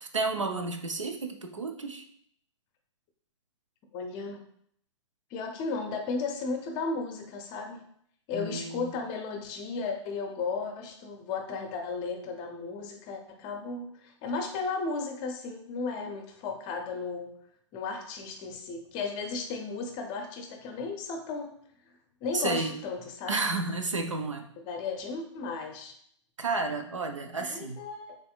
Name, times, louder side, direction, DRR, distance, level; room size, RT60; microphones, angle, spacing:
voice 1, 0.0-2.0 8.3-8.9 22.3-22.8 23.3-24.5 26.4-27.8, right 3 dB, 80° right, 5 dB, 0.6 m, -31 dB
voice 2, 3.9-4.4 5.3-7.8 8.3-13.9 14.2-17.3 17.7-21.5 22.2-23.4 24.6-25.9 27.4-28.2, left 4 dB, 30° left, 4 dB, 0.6 m, -34 dB
4.2 x 3.6 x 2.3 m, 0.66 s
figure-of-eight pair, 115°, 16 cm